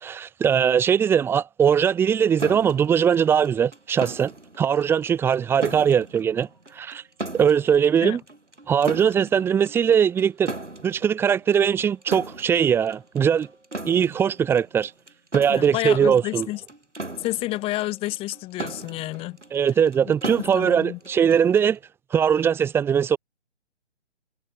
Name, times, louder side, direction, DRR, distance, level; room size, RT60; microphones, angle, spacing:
voice 1, 0.0-4.3 4.6-6.5 6.7-7.0 7.3-8.2 8.7-10.5 10.8-13.5 13.9-14.9 15.3-16.5 19.5-21.8 22.1-23.2, right 8 dB, 5° right, 1.4 m, -20 dB
sound 1, 2.4-21.8, right 2 dB, 85° right, 7.1 m, -38 dB
voice 2, 15.5-16.6 17.2-19.4 20.5-21.0, left 18 dB, 15° left, 3.7 m, -29 dB
figure-of-eight pair, 140°, 35 cm